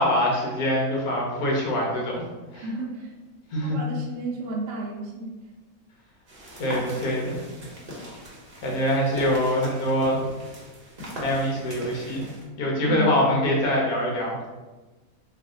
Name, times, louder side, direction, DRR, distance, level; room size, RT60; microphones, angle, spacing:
voice 1, 0.0-2.2 2.5-2.6 3.5-3.8 6.6-7.4 8.6-10.2 11.2-12.3 12.6-14.4, left 1 dB, 70° left, -2 dB, 1.4 m, -24 dB
voice 2, 2.6-3.1 3.6-5.3 12.7-13.1, right 3 dB, 65° right, -2 dB, 0.9 m, -32 dB
sound 1, 6.3-12.4, equal, 40° right, 1.0 m, -39 dB
3.3 x 2.5 x 3.7 m, 1.2 s
omnidirectional pair, 1.7 m